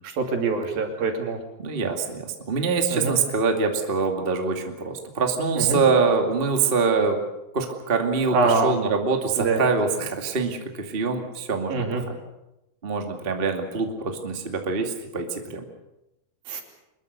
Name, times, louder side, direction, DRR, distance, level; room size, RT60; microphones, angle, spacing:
voice 1, 0.0-1.4 2.9-3.2 5.6-5.8 8.3-8.7 9.4-9.6 11.7-12.0 16.5-16.6, right 4 dB, 65° right, 3 dB, 4.6 m, -24 dB
voice 2, 1.6-7.2 7.5-12.1 12.8-15.6, right 4 dB, 20° right, 3 dB, 1.7 m, -24 dB
25.0 x 21.5 x 6.9 m, 0.92 s
omnidirectional pair, 4.5 m